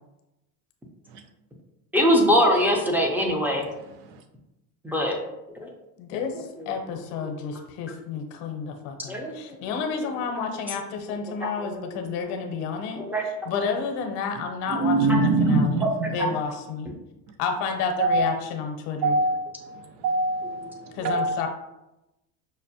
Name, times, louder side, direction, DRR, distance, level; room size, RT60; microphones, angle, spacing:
voice 1, 1.9-3.6 4.8-5.2 5.6-5.7 7.2-7.3 9.1-9.4 11.1-11.2 11.4-11.7 13.0-13.2 15.1-15.2, equal, 5° right, 0 dB, 0.5 m, -22 dB
voice 2, 6.0-13.0 13.5-15.8 16.1-16.9 17.4-19.1 20.9-21.5, left 5 dB, 75° left, 4 dB, 0.8 m, -30 dB
voice 3, 14.4-16.2 18.0-18.3 19.0-21.4, right 2 dB, 65° right, 6 dB, 0.6 m, -24 dB
5.5 x 2.1 x 2.7 m, 0.93 s
supercardioid pair, 115°, 46 cm